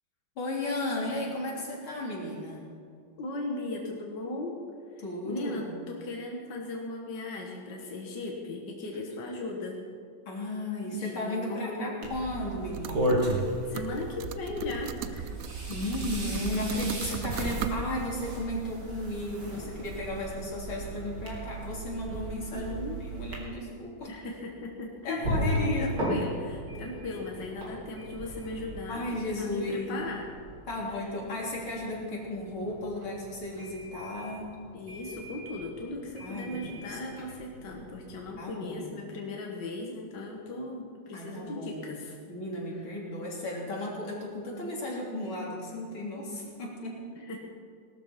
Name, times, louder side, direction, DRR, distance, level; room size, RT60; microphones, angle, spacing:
voice 1, 0.4-2.6 5.0-5.8 8.9-9.0 10.3-13.2 15.7-22.8 23.1-24.1 25.0-25.9 28.9-29.9 30.7-34.5 36.2-37.0 38.4-39.1 41.1-41.9 42.3-47.1, left 1 dB, 90° left, -3 dB, 4.2 m, -34 dB
voice 2, 3.2-4.6 4.9-9.8 10.9-12.1 13.7-15.4 22.5-23.0 24.1-30.3 30.9-31.0 34.7-42.2 42.7-42.9 47.3-47.4, left 2 dB, 60° left, 0 dB, 2.2 m, -37 dB
sound 1, 12.0-23.4, right 1 dB, 55° right, 3.3 m, -35 dB
sound 2, 12.7-13.5 13.7-17.8, right 9 dB, 75° right, 0.8 m, -39 dB
sound 3, 23.9-38.3, right 1 dB, 90° right, 5.7 m, -38 dB
18.5 x 12.5 x 6.0 m, 2.3 s
omnidirectional pair, 2.2 m